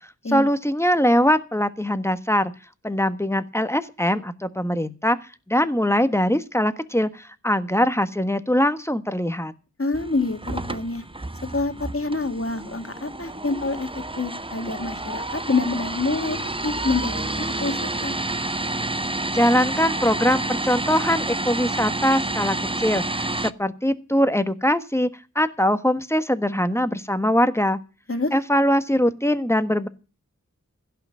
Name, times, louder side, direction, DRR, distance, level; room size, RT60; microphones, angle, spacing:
voice 1, 0.3-2.5 2.8-9.5 19.3-25.1 25.3-27.8 28.3-29.9, equal, 10° left, 11 dB, 1.3 m, -22 dB
voice 2, 9.8-11.0 11.5-13.9 14.2-18.1 28.1-28.3, left 3 dB, 45° left, 7 dB, 2.0 m, -27 dB
sound 1, 9.9-23.5, right 2 dB, 15° right, 0.7 m, -29 dB
16.0 x 5.9 x 8.8 m, 0.34 s
wide cardioid pair, 45°, 31 cm